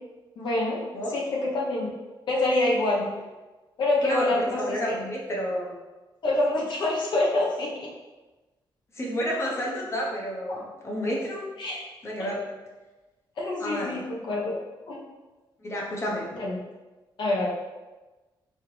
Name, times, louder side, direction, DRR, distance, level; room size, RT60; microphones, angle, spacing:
voice 1, 0.4-0.8 1.1-1.9 2.3-3.0 3.8-4.9 6.2-7.9 10.5-10.6 11.6-11.8 12.2-12.3 13.4-14.6 14.9-15.0 16.3-16.6 17.2-17.5, left 2 dB, 60° left, -3 dB, 1.0 m, -26 dB
voice 2, 4.0-5.7 8.9-11.5 12.0-12.5 13.6-14.0 15.6-16.3, equal, 30° left, -2 dB, 0.9 m, -30 dB
4.4 x 3.5 x 3.2 m, 1.2 s
wide cardioid pair, 170°, 9 cm